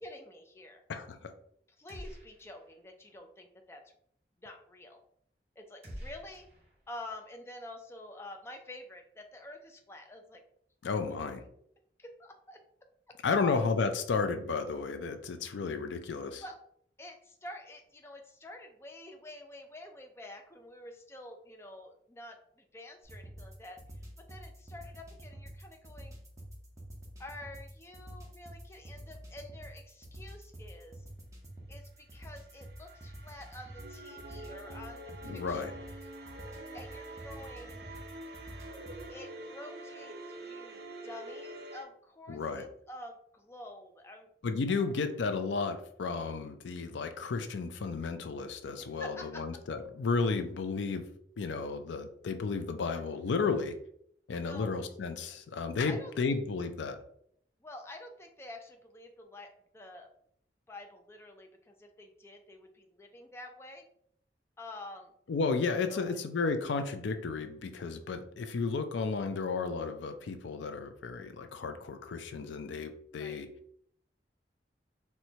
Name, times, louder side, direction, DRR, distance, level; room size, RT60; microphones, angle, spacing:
voice 1, 0.0-0.8 1.8-3.8 4.4-5.0 5.6-6.5 6.9-10.4 12.0-12.6 13.1-13.6 16.4-16.6 17.0-26.2 27.2-31.0 31.7-35.7 36.7-37.8 39.1-44.3 44.8-45.0 49.0-49.4 54.4-54.7 55.9-56.1 57.6-60.1 60.7-63.9 64.6-65.1 65.9-66.2 73.2-73.4, left 1 dB, 15° left, 3 dB, 0.3 m, -48 dB
voice 2, 0.9-1.3 10.8-11.4 13.2-16.4 35.2-35.7 42.3-42.6 44.4-51.0 51.4-53.7 54.3-57.0 65.3-73.5, left 4 dB, 85° left, 8 dB, 0.4 m, -33 dB
sound 1, 1.9-2.8 3.1-3.2 5.8-7.1, equal, 35° right, 1.2 m, -47 dB
sound 2, 23.0-39.1, right 1 dB, 20° right, 0.8 m, -49 dB
sound 3, 32.3-41.8, right 2 dB, 60° right, 0.5 m, -46 dB
4.3 x 2.2 x 2.7 m, 0.68 s
head